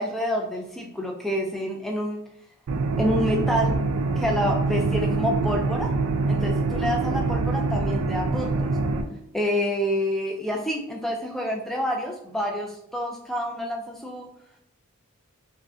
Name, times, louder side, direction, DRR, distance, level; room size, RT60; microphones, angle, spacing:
voice 1, 0.0-2.2 3.0-3.8 4.2-5.9 6.3-8.7 9.3-14.3, equal, ahead, 0 dB, 0.3 m, -28 dB
sound 1, 2.7-9.0, right 3 dB, 75° right, 0.3 m, -25 dB
3.5 x 2.1 x 2.5 m, 0.77 s
head